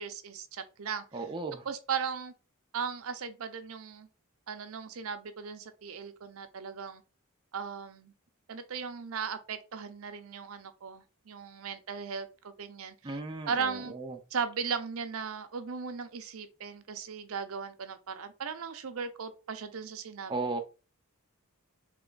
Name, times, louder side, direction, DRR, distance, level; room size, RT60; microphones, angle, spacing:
voice 1, 0.0-1.0 1.7-2.3 2.7-4.1 4.5-7.0 7.5-8.1 8.5-12.9 13.5-14.0 14.3-20.3, right 6 dB, 70° right, 0.6 m, -37 dB
voice 2, 1.1-1.7 13.0-14.2 20.3-20.6, right 3 dB, 20° right, 0.5 m, -35 dB
3.4 x 3.0 x 3.8 m
head